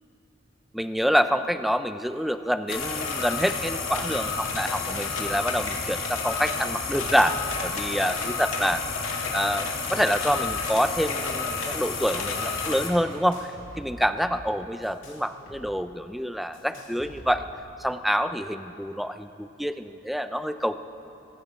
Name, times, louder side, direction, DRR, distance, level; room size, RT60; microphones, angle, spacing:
voice 1, 0.7-8.8 9.3-13.5 13.8-17.4 17.8-20.8, equal, ahead, 10 dB, 0.3 m, -27 dB
sound 1, 2.7-12.9, left 4 dB, 85° left, 1.8 m, -30 dB
sound 2, 3.9-4.1 4.3-4.9 5.2-5.7 6.2-7.6 8.0-8.9 9.7-10.9 11.4-12.5 13.1-15.6 15.9-16.0 16.5-17.6, left 1 dB, 65° left, 2.5 m, -46 dB
20.5 x 15.0 x 3.2 m, 3.0 s
head